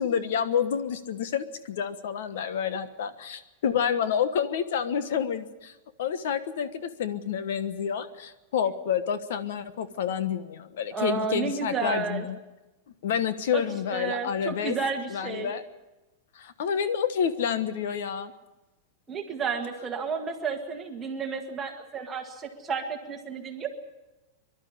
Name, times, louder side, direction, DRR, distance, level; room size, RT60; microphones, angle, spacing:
voice 1, 0.0-5.7 6.0-12.4 13.0-14.8 15.1-15.6 16.3-18.3, left 8 dB, 65° left, 12 dB, 1.2 m, -29 dB
voice 2, 10.9-12.3 13.5-13.6 13.9-15.5 19.1-23.7, right 5 dB, 15° right, 2 dB, 1.8 m, -31 dB
24.0 x 12.0 x 10.0 m, 1.1 s
supercardioid pair, 175°, 0 cm